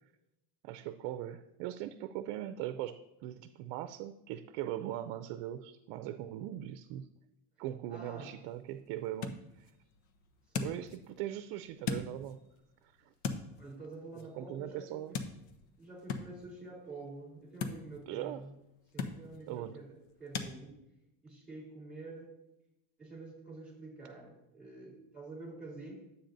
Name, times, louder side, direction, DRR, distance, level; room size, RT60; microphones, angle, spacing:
voice 1, 0.6-7.1 7.6-9.7 10.6-12.4 12.8-13.1 14.1-15.1 18.1-18.4 19.5-19.8, right 12 dB, 65° right, 10 dB, 0.6 m, -40 dB
voice 2, 7.9-8.3 10.5-10.7 13.6-15.2 15.8-18.5 18.9-20.8 21.2-22.3 23.0-25.9, right 2 dB, ahead, -3 dB, 3.6 m, -48 dB
sound 1, 8.0-20.5, left 6 dB, 70° left, 1.0 m, -43 dB
11.5 x 8.1 x 2.6 m, 0.89 s
cardioid pair, 130°, 46 cm